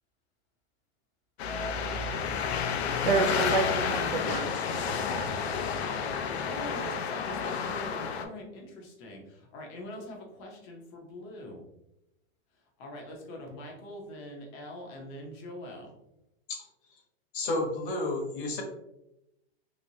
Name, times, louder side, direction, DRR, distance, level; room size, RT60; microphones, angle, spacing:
sound 1, 1.4-8.2, left 6 dB, 85° left, 0.6 m, -30 dB
voice 1, 3.0-5.2, right 4 dB, 60° right, 6 dB, 0.5 m, -30 dB
voice 2, 6.4-11.6 12.8-15.9, left 1 dB, 30° left, 0 dB, 0.6 m, -43 dB
voice 3, 17.3-18.6, left 2 dB, 55° left, 1 dB, 1.0 m, -31 dB
3.1 x 3.0 x 2.6 m, 0.87 s
supercardioid pair, 175°, 31 cm